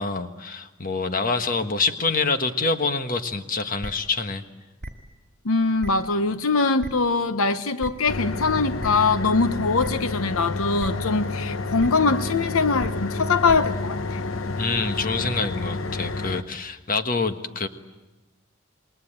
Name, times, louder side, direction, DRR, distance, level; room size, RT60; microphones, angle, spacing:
voice 1, 0.0-4.4 14.6-17.7, left 4 dB, 40° left, 1.4 m, -26 dB
sound 1, 3.8-3.9 4.8-4.9 5.8-5.9 6.8-6.9 7.8-7.9 8.8-8.9 9.8-9.9 10.8-10.9 11.8-11.9 12.8-12.9 13.5-13.6, right 1 dB, 50° right, 2.3 m, -34 dB
voice 2, 5.4-14.2, left 4 dB, 90° left, 1.0 m, -22 dB
sound 2, 8.1-16.4, left 3 dB, 70° left, 1.1 m, -29 dB
28.0 x 21.5 x 8.8 m
head